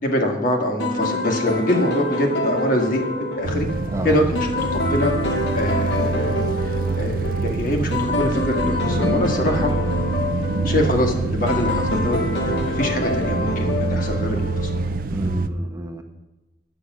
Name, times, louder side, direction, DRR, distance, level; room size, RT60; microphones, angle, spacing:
voice 1, 0.0-3.0 3.4-3.7 4.0-9.7 10.6-12.2 12.4-14.8, equal, 45° left, 2 dB, 1.9 m, -24 dB
sound 1, 0.8-15.0, left 2 dB, 65° left, 2.0 m, -26 dB
sound 2, 3.4-15.5, right 3 dB, 50° right, 0.5 m, -26 dB
voice 2, 15.1-16.0, right 1 dB, 15° right, 3 dB, 1.0 m, -30 dB
10.0 x 8.4 x 6.2 m, 1.0 s
head